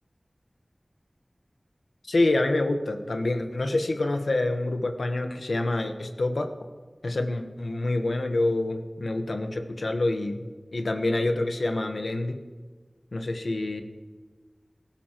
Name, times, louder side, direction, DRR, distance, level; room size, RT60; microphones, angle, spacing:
voice 1, 2.1-6.5 7.0-10.4 10.7-12.4 13.1-13.8, left 2 dB, 85° left, 6 dB, 1.1 m, -27 dB
19.5 x 12.5 x 3.0 m, 1.4 s
wide cardioid pair, 45°, 0 cm